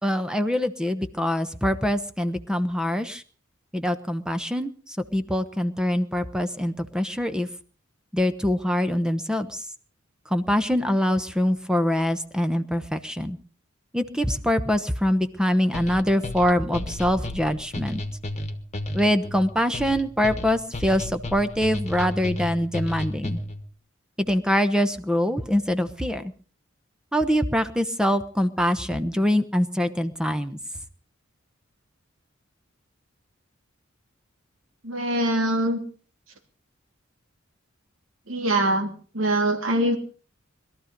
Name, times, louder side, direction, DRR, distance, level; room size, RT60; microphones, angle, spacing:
voice 1, 0.0-3.2 3.7-7.5 8.1-9.6 10.3-13.4 13.9-18.0 18.9-23.4 24.3-26.3 27.1-30.6, equal, 5° right, 10 dB, 1.0 m, -24 dB
sound 1, 15.7-23.7, left 1 dB, 35° left, 1.5 m, -33 dB
voice 2, 34.8-35.8 38.3-40.0, right 1 dB, 85° right, 4 dB, 3.1 m, -23 dB
21.5 x 13.0 x 5.2 m, 0.40 s
head